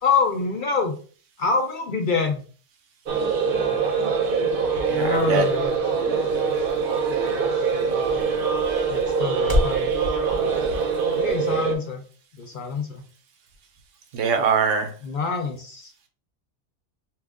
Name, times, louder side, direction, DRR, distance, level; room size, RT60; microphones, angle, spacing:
voice 1, 0.0-1.0 1.4-2.4 3.6-4.5 4.9-5.8 8.9-10.0 11.2-12.0 12.4-13.0 15.0-15.9, left 4 dB, 60° left, 3 dB, 0.6 m, -26 dB
sound 1, 3.1-11.8, right 5 dB, 55° right, 0.7 m, -23 dB
sound 2, 3.6-9.9, left 2 dB, 20° right, 0.8 m, -33 dB
voice 2, 4.9-5.5 14.1-14.9, right 6 dB, 90° right, 5 dB, 1.0 m, -23 dB
2.9 x 2.3 x 3.5 m, 0.41 s
omnidirectional pair, 1.2 m